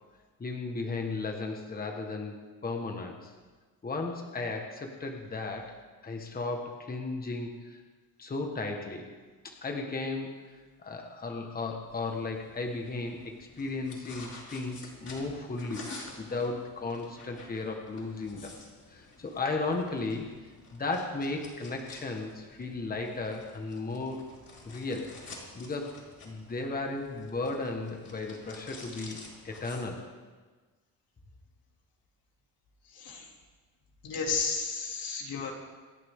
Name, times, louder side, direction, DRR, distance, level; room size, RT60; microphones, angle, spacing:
voice 1, 0.4-3.3 3.8-5.7 6.0-7.8 8.2-9.1 9.4-10.3 10.8-15.8 16.2-18.5 18.9-20.3 20.7-24.3 24.6-25.2 25.5-30.0, left 3 dB, 25° left, 2 dB, 1.5 m, -35 dB
sound 1, 11.9-29.9, left 3 dB, 45° left, 4.6 m, -50 dB
voice 2, 32.9-33.3 34.0-35.5, left 5 dB, 70° left, 0 dB, 3.0 m, -32 dB
26.5 x 10.5 x 3.7 m, 1.4 s
cardioid pair, 130°, 36 cm